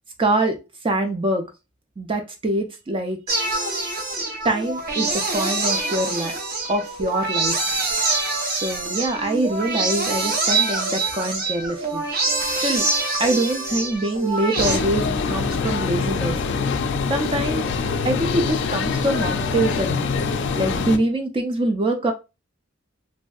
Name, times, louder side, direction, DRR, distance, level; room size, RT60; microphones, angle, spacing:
voice 1, 0.2-0.6 0.8-1.5 2.0-3.2 4.4-6.3 6.7-7.7 8.4-12.1 12.6-12.9 13.2-16.4 17.1-17.7 18.0-20.0 20.5-22.1, right 1 dB, 25° right, 5 dB, 0.3 m, -24 dB
sound 1, 3.3-14.8, right 3 dB, 45° right, 0.7 m, -25 dB
sound 2, 14.6-21.0, left 4 dB, 60° left, 0.3 m, -24 dB
3.1 x 2.6 x 2.2 m, 0.27 s
head